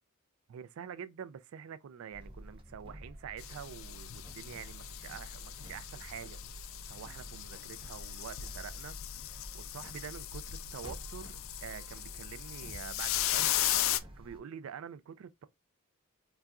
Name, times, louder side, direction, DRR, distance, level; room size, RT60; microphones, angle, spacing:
voice 1, 0.5-6.4 6.9-15.5, right 8 dB, 75° right, 0.3 m, -47 dB
sound 1, 2.1-14.4, equal, 25° right, 0.7 m, -49 dB
sound 2, 3.4-14.0, left 13 dB, 65° left, 0.3 m, -37 dB
3.9 x 2.3 x 2.3 m
head